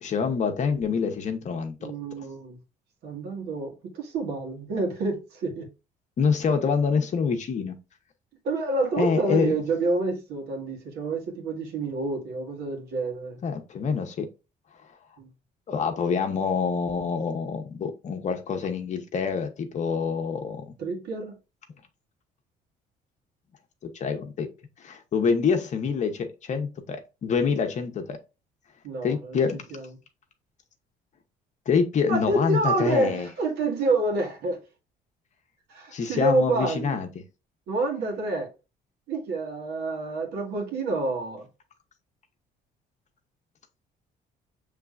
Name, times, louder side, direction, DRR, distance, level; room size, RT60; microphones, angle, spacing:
voice 1, 0.0-1.9 6.2-7.8 9.0-9.6 13.4-14.3 15.7-20.7 23.9-24.5 24.8-28.2 29.0-29.6 31.7-33.3 35.9-37.1, left 5 dB, 45° left, 0.9 m, -26 dB
voice 2, 1.8-2.6 3.0-5.7 8.4-13.4 15.2-15.3 20.8-21.4 28.8-29.4 29.7-29.9 32.1-34.6 35.7-37.0 37.7-38.5 39.1-41.5, right 2 dB, 75° right, 1.6 m, -28 dB
6.6 x 3.3 x 2.4 m
cardioid pair, 110°, 17 cm